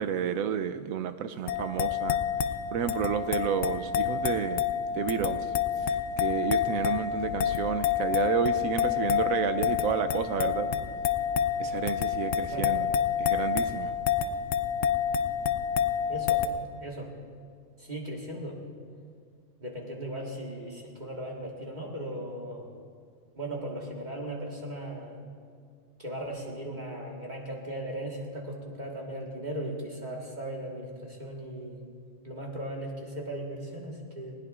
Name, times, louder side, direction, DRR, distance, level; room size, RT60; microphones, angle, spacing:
voice 1, 0.0-2.2 2.7-4.7 4.9-5.5 5.8-10.7 11.6-12.9 13.2-13.9, right 8 dB, 85° right, 10 dB, 1.0 m, -31 dB
sound 1, 1.5-16.5, left 9 dB, 70° left, 0.9 m, -28 dB
voice 2, 12.5-12.8 16.1-16.4 16.8-17.1 17.8-18.6 19.6-22.7 23.3-25.2 26.0-31.8 32.2-34.3, right 1 dB, 35° right, -2 dB, 1.6 m, -37 dB
20.0 x 18.0 x 2.4 m, 2.1 s
omnidirectional pair, 1.4 m